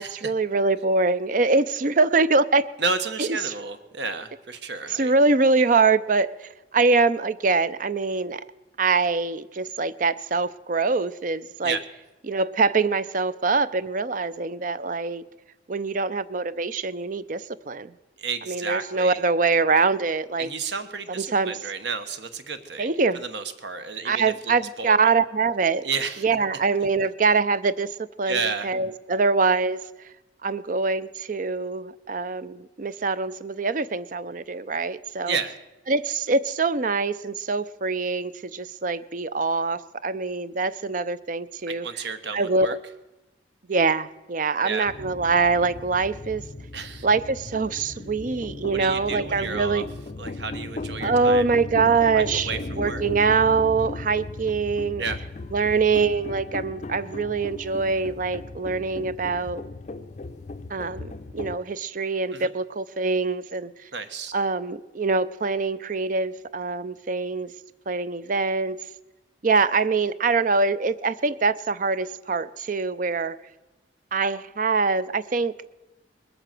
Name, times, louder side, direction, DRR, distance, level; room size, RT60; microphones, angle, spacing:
voice 1, 0.0-2.7 3.2-3.5 4.9-8.4 8.8-11.8 12.3-15.2 15.7-17.9 18.5-20.5 21.1-21.6 22.8-23.2 24.0-25.8 26.2-29.8 30.4-35.4 35.9-42.1 42.3-42.8 43.7-46.5 47.0-49.9 51.0-55.0 55.5-59.6 60.7-63.7 64.3-67.5 67.9-68.9 69.4-73.4 74.1-75.5, right 4 dB, 45° right, 15 dB, 0.5 m, -24 dB
voice 2, 2.8-5.1 11.6-11.8 18.2-19.2 20.4-22.9 23.1-25.1 25.8-26.2 28.3-28.7 35.3-35.6 41.7-42.8 44.6-44.9 46.7-47.1 48.6-49.8 50.2-51.4 52.1-53.0 55.0-55.2 62.3-62.5 63.9-64.3, right 5 dB, 70° right, 9 dB, 1.2 m, -31 dB
sound 1, 44.9-61.6, left 2 dB, 40° left, 0.5 m, -37 dB
21.0 x 7.9 x 7.6 m, 1.0 s
head